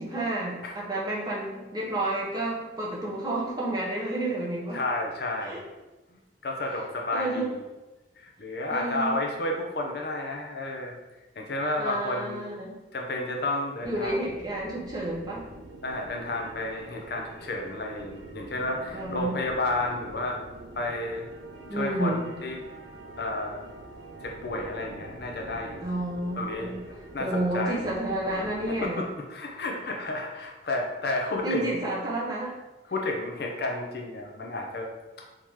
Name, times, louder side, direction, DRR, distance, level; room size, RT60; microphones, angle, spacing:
voice 1, 0.0-4.8 5.4-5.6 7.1-7.5 8.7-9.2 11.8-12.8 13.8-15.4 18.9-19.3 21.7-22.3 25.8-26.8 27.2-29.0 31.4-32.5, right 1 dB, 20° right, -5 dB, 1.0 m, -30 dB
voice 2, 4.7-5.6 6.4-7.6 8.2-11.0 11.4-12.4 12.9-14.2 15.8-20.4 20.7-21.3 21.7-22.6 23.2-23.6 24.2-25.8 26.4-26.7 27.1-27.9 28.7-31.7 32.9-34.9, left 2 dB, 55° left, 1 dB, 0.6 m, -31 dB
sound 1, 13.8-28.9, right 2 dB, 90° right, 0.7 m, -46 dB
3.7 x 2.9 x 4.7 m, 1.1 s
head